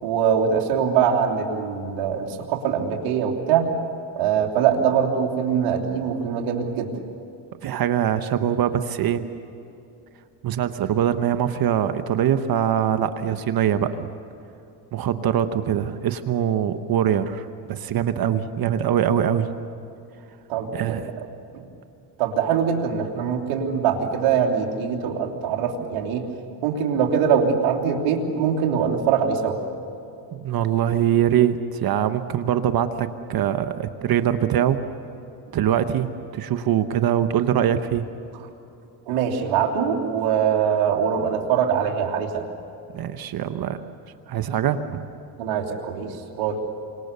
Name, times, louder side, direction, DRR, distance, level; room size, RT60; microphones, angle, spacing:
voice 1, 0.0-3.7 4.2-6.9 20.5-21.0 21.5-21.6 22.2-26.2 26.6-29.6 39.1-42.5 45.4-46.6, right 7 dB, 70° right, 1 dB, 3.7 m, -23 dB
voice 2, 7.6-9.3 10.4-14.1 14.9-19.5 20.7-21.1 30.3-34.8 35.5-38.1 42.9-43.8 44.3-45.1, right 10 dB, 45° right, 10 dB, 1.3 m, -23 dB
29.0 x 25.5 x 7.0 m, 2.7 s
supercardioid pair, 100°, 50 cm